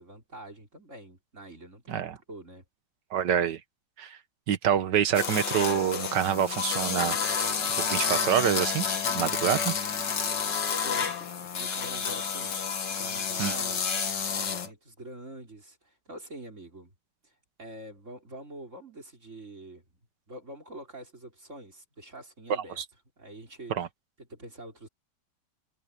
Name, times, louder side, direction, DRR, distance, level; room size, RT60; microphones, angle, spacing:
voice 1, 0.0-2.6 10.4-16.9 17.2-19.8 20.3-22.8 23.2-23.9 24.2-24.9, right 1 dB, 45° right, 4.3 m, -46 dB
voice 2, 3.1-3.6 4.0-4.2 4.5-7.5 7.8-8.8 9.1-9.7 13.4-13.5 22.8-22.9 23.7-23.9, right 9 dB, 85° right, 1.7 m, -26 dB
sound 1, 5.1-14.7, left 6 dB, 90° left, 2.4 m, -30 dB
omnidirectional pair, 1.9 m